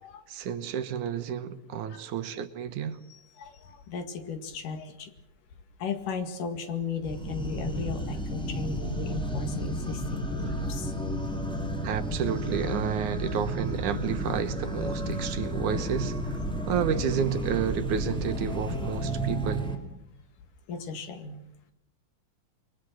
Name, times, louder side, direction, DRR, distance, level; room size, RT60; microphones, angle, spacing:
voice 1, 0.3-3.0 10.5-10.6 11.8-16.4 16.7-19.7, right 8 dB, 70° right, 2.5 m, -31 dB
voice 2, 3.1-5.1 5.8-10.9 20.7-21.4, left 5 dB, 75° left, 3.6 m, -36 dB
sound 1, 7.0-19.8, equal, ahead, 2.6 m, -32 dB
28.0 x 22.5 x 6.3 m
omnidirectional pair, 3.8 m